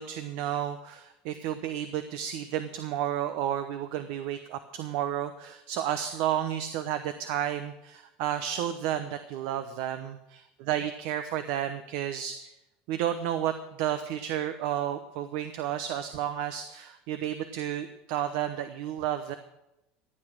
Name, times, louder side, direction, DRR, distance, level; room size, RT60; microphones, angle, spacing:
voice 1, 0.0-12.5 12.9-13.5 13.8-19.4, right 10 dB, 70° right, 9 dB, 0.9 m, -32 dB
15.0 x 8.8 x 6.2 m, 0.90 s
supercardioid pair, 105°, 4 cm